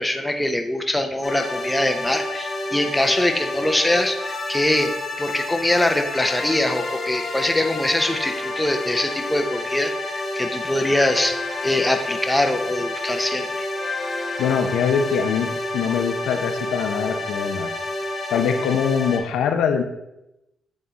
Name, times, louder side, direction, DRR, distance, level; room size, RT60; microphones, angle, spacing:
voice 1, 0.0-4.9 5.2-13.7, left 1 dB, 10° left, 5 dB, 0.7 m, -23 dB
sound 1, 1.2-19.2, left 2 dB, 40° left, 1.2 m, -29 dB
voice 2, 14.4-17.7 18.3-19.8, left 7 dB, 85° left, 6 dB, 0.7 m, -23 dB
8.1 x 3.7 x 4.0 m, 0.89 s
cardioid pair, 80°, 0 cm